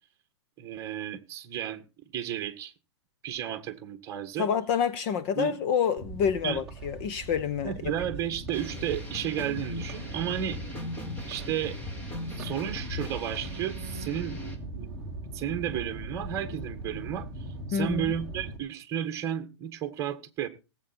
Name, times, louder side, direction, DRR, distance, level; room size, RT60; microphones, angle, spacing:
voice 1, 0.6-1.8 2.1-2.7 3.2-4.5 5.3-5.6 6.4-6.6 7.6-10.6 11.2-11.8 12.3-14.4 14.7-14.9 15.3-17.3 17.7-20.5, right 10 dB, 20° right, 1.7 m, -33 dB
voice 2, 4.4-7.7 17.7-18.1, left 7 dB, 30° left, 0.7 m, -27 dB
sound 1, 6.0-18.6, right 2 dB, 5° right, 1.8 m, -40 dB
sound 2, 8.5-14.6, left 2 dB, 10° left, 1.9 m, -39 dB
17.5 x 8.2 x 4.4 m
hypercardioid pair, 160°, 14 cm